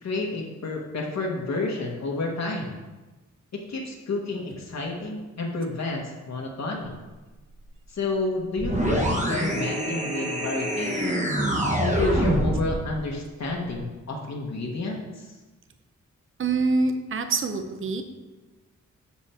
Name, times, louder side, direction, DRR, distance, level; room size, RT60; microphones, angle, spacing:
voice 1, 0.0-2.8 3.5-7.0 7.9-11.3 11.8-15.3, left 2 dB, 60° left, -1 dB, 1.1 m, -30 dB
sound 1, 8.6-12.7, right 1 dB, 25° right, 1.0 m, -25 dB
voice 2, 16.4-18.0, right 3 dB, 45° right, 7 dB, 0.6 m, -25 dB
7.3 x 6.9 x 4.3 m, 1.2 s
wide cardioid pair, 170°, 30 cm